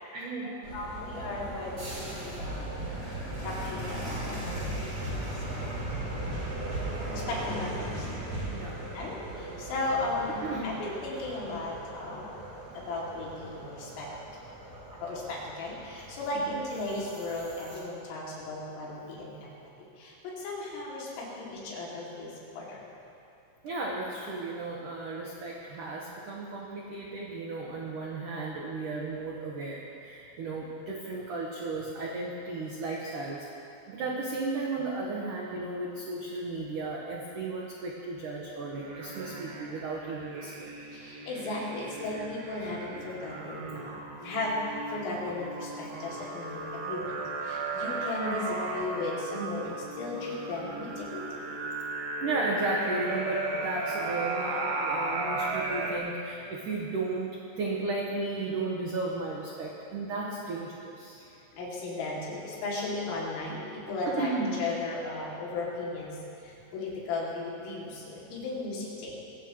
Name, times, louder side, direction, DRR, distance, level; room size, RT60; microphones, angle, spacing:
voice 1, 0.1-0.7 8.5-8.8 10.4-10.8 16.5-16.6 23.6-33.5 33.9-40.7 52.2-61.2 64.1-64.6, right 3 dB, 80° right, -3 dB, 1.8 m, -34 dB
sound 1, 0.6-17.8, right 1 dB, 30° right, 4.8 m, -38 dB
voice 2, 0.7-2.9 3.4-6.2 7.1-8.1 8.9-12.3 12.7-14.1 14.9-19.5 19.8-22.8 40.9-47.2 47.4-51.4 61.2-61.3 61.5-69.1, left 2 dB, 80° left, -5 dB, 5.4 m, -36 dB
sound 2, 38.7-56.0, right 3 dB, 65° right, 3.0 m, -36 dB
21.5 x 16.0 x 3.2 m, 2.6 s
omnidirectional pair, 5.9 m